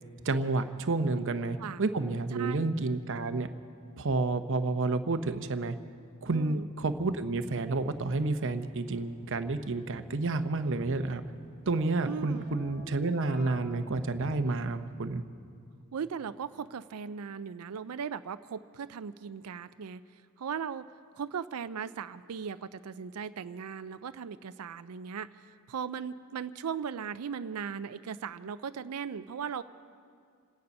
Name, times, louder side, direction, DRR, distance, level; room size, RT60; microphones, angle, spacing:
voice 1, 0.2-3.5 4.0-5.7 6.2-11.2 11.7-15.2, right 3 dB, 60° right, 9 dB, 0.8 m, -30 dB
voice 2, 2.3-2.7 6.3-6.7 12.0-12.4 15.9-20.0 20.4-20.8 21.2-25.3 25.7-29.6, right 7 dB, 80° right, 12 dB, 0.4 m, -38 dB
Keyboard (musical), 6.8-15.2, right 1 dB, 35° left, 2.4 m, -50 dB
27.5 x 9.6 x 5.3 m, 2.2 s
head